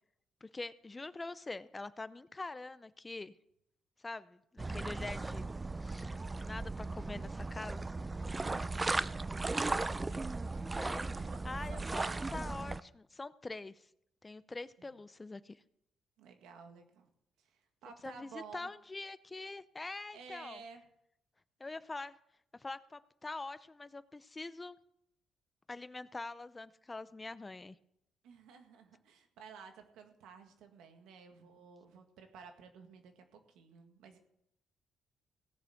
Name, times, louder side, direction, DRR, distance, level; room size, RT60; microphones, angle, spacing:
voice 1, 0.4-3.3 4.0-5.5 5.8-6.1 6.4-7.8 10.7-11.1 11.4-13.9 14.2-15.6 18.0-20.6 21.6-22.2 22.5-24.8 25.7-27.8, left 3 dB, 20° left, 15 dB, 0.6 m, -44 dB
sound 1, 4.6-12.8, right 3 dB, 20° right, 0.5 m, -37 dB
voice 2, 8.4-9.4 10.1-10.5 11.1-11.4 11.7-12.2 14.8-15.0 16.2-17.1 17.4-18.7 20.1-20.8 28.2-34.2, right 6 dB, 90° right, 5 dB, 1.9 m, -54 dB
16.5 x 6.8 x 7.8 m, 0.77 s
cardioid pair, 90°, 0 cm